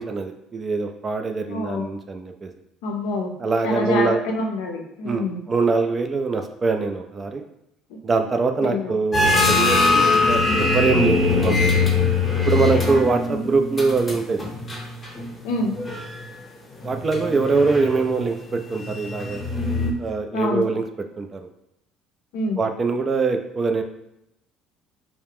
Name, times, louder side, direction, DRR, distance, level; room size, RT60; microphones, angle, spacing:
voice 1, 0.0-2.5 3.4-4.2 5.0-7.4 8.0-11.9 12.5-14.4 16.8-19.5 20.0-20.8 21.2-21.4 22.6-23.8, right 4 dB, 35° right, 6 dB, 0.3 m, -23 dB
voice 2, 1.5-1.8 2.8-3.3 3.6-5.4 8.6-8.9 13.3-13.5 15.4-15.8 20.3-20.7 22.3-22.6, left 2 dB, 75° left, 1 dB, 0.5 m, -26 dB
sound 1, 9.1-15.3 15.6-16.2 16.8-19.9, left 3 dB, 25° left, 0.8 m, -22 dB
2.3 x 2.0 x 3.4 m, 0.83 s
hypercardioid pair, 65°, 0 cm